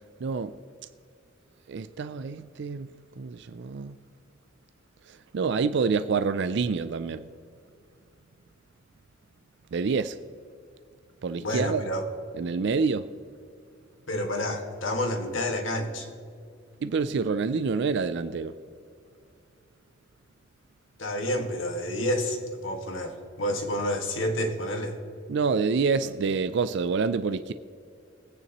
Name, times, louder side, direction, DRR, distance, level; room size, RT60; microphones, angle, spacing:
voice 1, 0.2-0.5 1.7-2.9 3.2-4.0 5.1-7.2 9.7-10.2 11.2-11.9 12.4-13.1 16.8-18.5 25.3-27.5, right 5 dB, 65° right, 0.4 m, -27 dB
voice 2, 11.4-12.0 14.1-16.1 21.0-25.0, left 1 dB, 85° left, 1.8 m, -29 dB
21.0 x 9.4 x 3.0 m
head